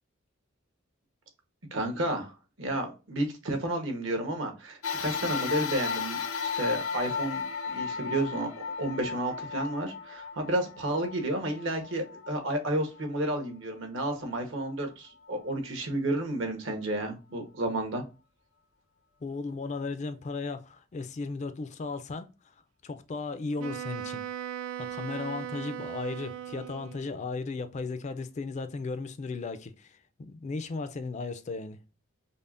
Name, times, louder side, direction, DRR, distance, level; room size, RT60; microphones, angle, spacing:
voice 1, 1.7-2.3 2.6-18.0, right 1 dB, 65° right, 1.0 m, -31 dB
sound 1, 4.8-13.4 14.1-14.2 15.3-15.4, left 6 dB, 85° left, 0.6 m, -35 dB
voice 2, 19.2-22.3 22.8-24.3 24.8-31.8, left 3 dB, 35° left, 0.3 m, -36 dB
Wind instrument woodwind instrument, 23.6-27.2, right 10 dB, 85° right, 0.3 m, -38 dB
5.3 x 2.1 x 2.5 m
head